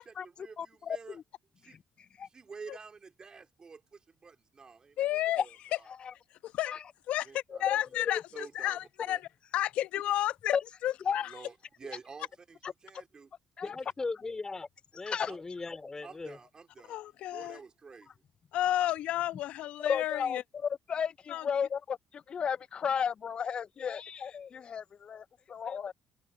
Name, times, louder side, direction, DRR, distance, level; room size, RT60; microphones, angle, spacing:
voice 1, 0.1-1.2 1.6-1.8 2.2-5.9 7.3-7.7 8.3-8.8 9.1-9.2 11.3-13.3 13.6-13.7 15.3-15.4 16.0-17.0 17.3-18.1, right 5 dB, 40° right, 3.2 m, -49 dB
voice 2, 0.6-1.2 2.2-2.3 8.1-8.2 10.5-10.6 11.1-11.2 12.6-12.7 13.6-13.8 15.1-15.3 19.8-20.4 20.9-25.9, left 7 dB, 50° left, 0.4 m, -33 dB
voice 3, 5.0-5.4 6.4-6.7 7.1-10.5 10.8-11.4 16.9-17.6 18.5-20.4 21.3-21.5, left 13 dB, 75° left, 1.0 m, -32 dB
voice 4, 13.6-14.7 14.9-16.4, left 3 dB, 25° left, 3.5 m, -38 dB
supercardioid pair, 65°, 2 cm